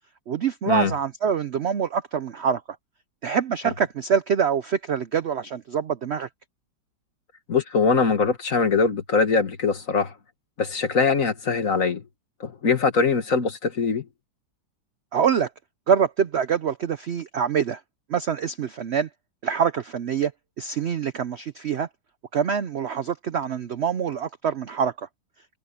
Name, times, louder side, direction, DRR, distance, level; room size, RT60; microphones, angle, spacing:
voice 1, 0.3-2.6 3.2-6.3 15.1-15.5 15.9-17.8 18.1-19.1 19.4-20.3 20.6-21.9 22.3-25.1, right 7 dB, 65° right, 0.6 m, -25 dB
voice 2, 7.5-10.1 10.6-12.0 12.4-14.0, left 4 dB, 50° left, 2.1 m, -22 dB
omnidirectional pair, 1.9 m